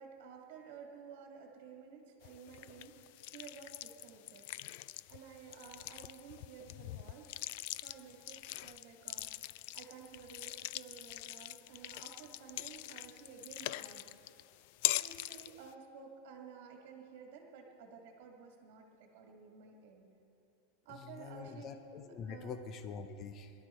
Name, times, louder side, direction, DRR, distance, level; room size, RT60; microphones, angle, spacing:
voice 1, 0.0-3.1 3.3-4.5 5.1-7.3 7.8-14.1 14.9-20.0 20.8-21.7 22.3-22.7, right 6 dB, 55° right, 1 dB, 2.2 m, -53 dB
sound 1, 2.2-15.7, left 17 dB, 55° left, 0.3 m, -43 dB
voice 2, 21.2-23.5, left 6 dB, 30° left, 8 dB, 0.7 m, -45 dB
23.0 x 12.0 x 4.5 m, 2.7 s
supercardioid pair, 160°, 0 cm